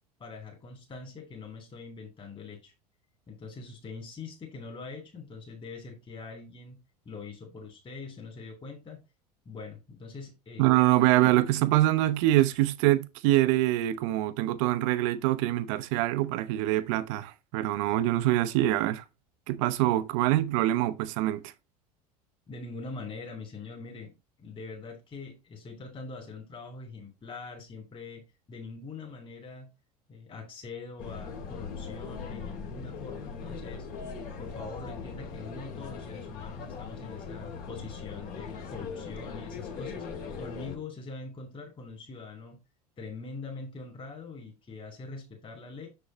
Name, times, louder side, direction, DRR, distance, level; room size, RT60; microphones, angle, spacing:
voice 1, 0.2-2.7 3.3-6.8 7.0-9.0 9.4-10.8 22.5-29.7 30.1-33.9 34.4-40.0 40.4-42.6 43.0-45.9, left 4 dB, 25° left, 3.1 m, -43 dB
voice 2, 10.6-19.0 19.5-21.5, right 15 dB, 55° right, 0.8 m, -25 dB
sound 1, 31.0-40.8, left 5 dB, 45° left, 2.4 m, -40 dB
6.8 x 6.7 x 2.8 m
figure-of-eight pair, 80°, 20 cm